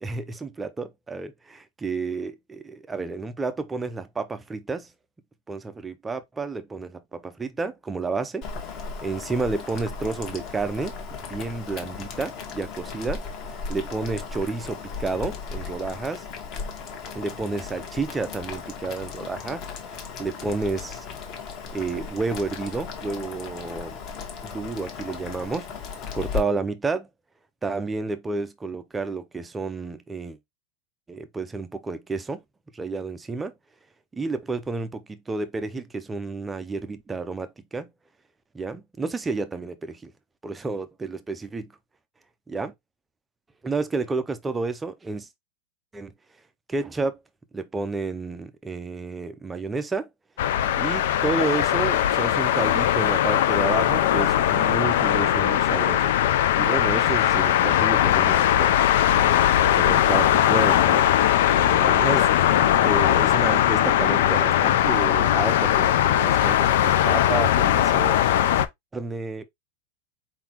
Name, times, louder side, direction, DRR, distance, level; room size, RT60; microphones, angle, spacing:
voice 1, 0.0-4.9 5.5-10.9 11.3-13.2 13.5-16.3 17.1-19.7 20.2-21.1 21.7-24.0 24.4-25.7 26.1-27.1 27.6-30.4 31.1-32.4 32.7-33.5 34.1-37.9 38.5-40.1 40.4-41.7 42.5-42.7 43.6-45.3 45.9-46.1 46.7-47.2 47.5-50.1 50.7-56.0 56.6-58.8 59.8-61.1 61.6-68.2 68.9-69.4, right 3 dB, 10° right, 0.5 m, -30 dB
Boiling, 8.4-26.4, left 5 dB, 35° left, 1.2 m, -36 dB
sound 1, 50.4-68.7, left 11 dB, 65° left, 0.5 m, -20 dB
4.5 x 3.9 x 2.8 m
supercardioid pair, 170°, 0 cm